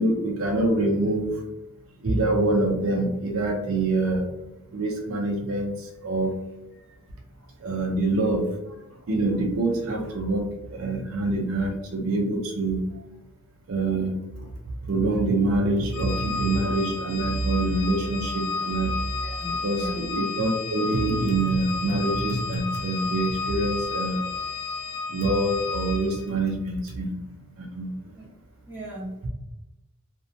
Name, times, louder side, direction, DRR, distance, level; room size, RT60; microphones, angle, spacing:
voice 1, 0.0-1.4 2.0-4.3 4.7-6.3 7.6-8.5 9.1-12.9 13.7-14.5 14.9-18.9 19.6-24.2 25.1-27.2 27.6-28.0, right 2 dB, 65° right, 2 dB, 0.4 m, -25 dB
Organ, 15.9-26.3, left 4 dB, 70° left, 0.4 m, -32 dB
voice 2, 19.2-20.2 28.2-28.4 28.7-29.3, equal, 10° right, -9 dB, 0.7 m, -38 dB
2.5 x 2.1 x 2.5 m, 0.96 s
head